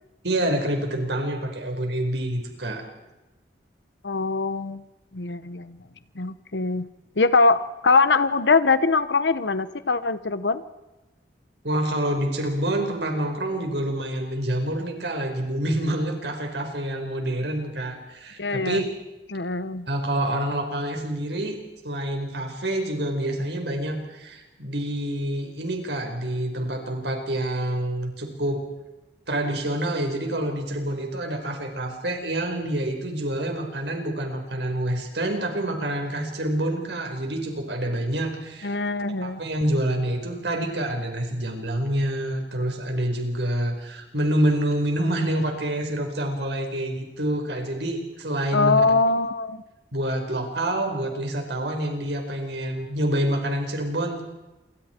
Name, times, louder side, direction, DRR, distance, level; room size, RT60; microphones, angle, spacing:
voice 1, 0.2-2.8 11.6-18.9 19.9-21.6 21.8-28.6 29.3-38.8 39.2-48.8 49.9-54.2, right 1 dB, 80° right, 4 dB, 4.6 m, -27 dB
voice 2, 4.0-4.8 5.1-5.8 6.2-6.9 7.2-10.6 18.4-18.8 19.3-19.9 38.6-39.4 48.5-49.6, left 3 dB, 85° left, 13 dB, 1.1 m, -22 dB
29.0 x 25.0 x 4.5 m, 1.1 s
head